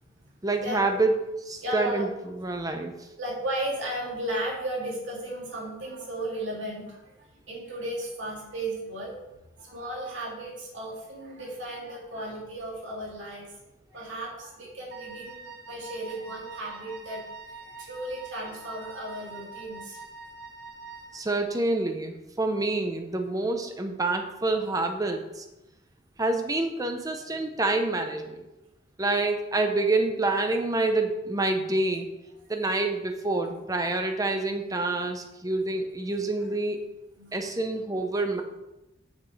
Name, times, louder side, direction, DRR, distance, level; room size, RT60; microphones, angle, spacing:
voice 1, 0.4-1.2 1.5-2.9 21.1-25.4 26.2-28.4 29.0-32.1 32.5-36.8 37.3-38.4, right 2 dB, 20° right, 5 dB, 0.8 m, -27 dB
voice 2, 1.6-2.1 3.2-7.2 7.5-9.2 9.6-20.0 33.5-33.9 36.1-36.3 37.2-37.4, right 1 dB, 85° right, -3 dB, 2.7 m, -35 dB
Wind instrument woodwind instrument, 14.9-21.3, right 4 dB, 60° right, 0.8 m, -44 dB
8.6 x 7.2 x 3.3 m, 0.95 s
head